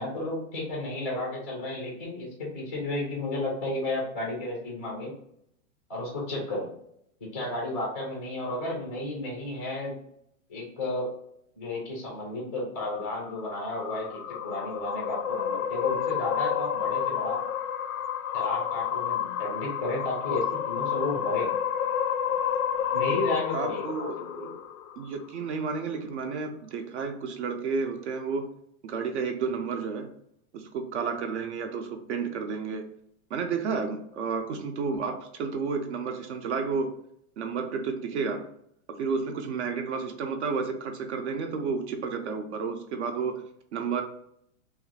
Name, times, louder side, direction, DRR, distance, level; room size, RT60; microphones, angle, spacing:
voice 1, 0.0-5.1 5.9-6.7 7.2-10.0 10.5-11.1 11.6-17.4 18.3-21.5 22.9-24.5, left 2 dB, 10° left, -2 dB, 0.3 m, -33 dB
sound 1, 12.8-25.3, left 8 dB, 85° left, 0.5 m, -30 dB
voice 2, 23.5-24.2 25.0-28.5 28.8-30.1 30.5-32.9 33.3-37.0 37.4-38.5 38.9-43.4 43.7-44.0, right 5 dB, 55° right, 5 dB, 0.5 m, -31 dB
3.1 x 2.4 x 3.2 m, 0.72 s
supercardioid pair, 160°, 42 cm